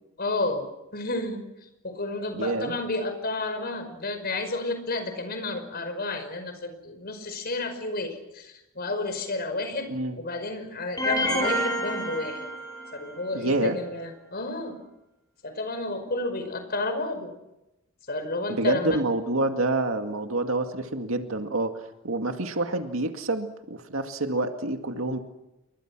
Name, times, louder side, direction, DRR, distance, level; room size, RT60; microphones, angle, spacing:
voice 1, 0.2-0.7 0.9-1.4 1.8-9.9 10.2-12.5 12.9-14.8 15.4-17.3 18.1-19.0, left 2 dB, 50° left, 8 dB, 5.4 m, -31 dB
voice 2, 2.4-2.7 9.9-10.2 13.3-13.8 18.5-21.8 22.0-25.2, right 2 dB, 75° right, 5 dB, 2.2 m, -27 dB
sound 1, 11.0-13.1, equal, 20° left, 7.1 m, -28 dB
30.0 x 23.5 x 6.2 m, 0.93 s
head